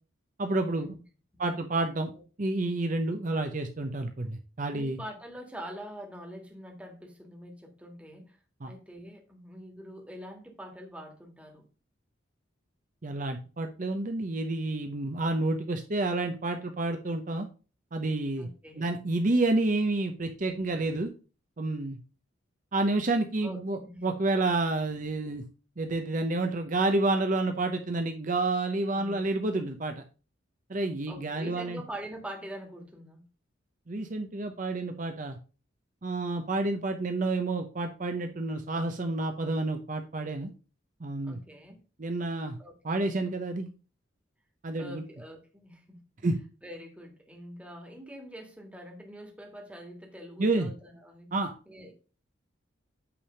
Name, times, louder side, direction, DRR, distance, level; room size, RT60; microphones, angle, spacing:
voice 1, 0.4-1.0 1.4-2.1 2.4-5.0 8.6-8.7 13.0-17.5 17.9-18.5 18.8-21.1 21.6-22.0 22.7-25.4 25.8-29.9 30.7-31.8 33.9-35.4 36.0-40.5 41.0-41.4 42.0-42.6 42.8-43.7 44.6-45.0 46.2-46.4 50.4-50.7 51.3-51.5, right 2 dB, 40° right, 6 dB, 0.7 m, -29 dB
voice 2, 4.7-8.4 8.7-11.7 18.4-19.0 23.4-24.1 28.9-29.3 31.1-33.2 41.2-41.8 42.6-43.1 44.8-46.0 46.6-51.3 51.7-51.9, equal, 5° right, 1 dB, 1.6 m, -44 dB
8.6 x 3.4 x 5.5 m, 0.35 s
head